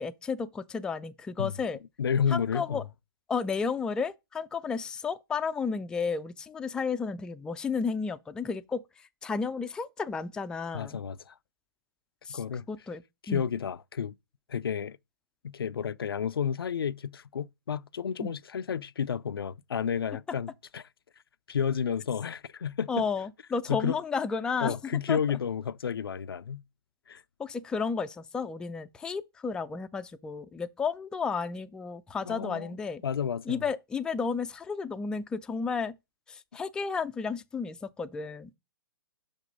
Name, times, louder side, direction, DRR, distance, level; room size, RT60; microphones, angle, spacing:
voice 1, 0.0-1.8 2.3-2.8 3.3-11.0 12.3-12.4 12.7-13.0 13.3-13.5 18.2-18.3 22.9-25.2 27.4-33.0 33.5-35.9 36.3-38.5, left 5 dB, 5° left, 0.3 m, -32 dB
voice 2, 2.0-2.9 10.7-11.3 12.3-12.7 13.2-14.2 14.5-15.0 15.4-20.8 21.5-23.1 23.7-24.0 24.6-26.6 27.1-27.2 32.3-32.7 33.0-33.6, left 7 dB, 80° left, 0.4 m, -31 dB
6.0 x 5.2 x 5.2 m
hypercardioid pair, 125°, 12 cm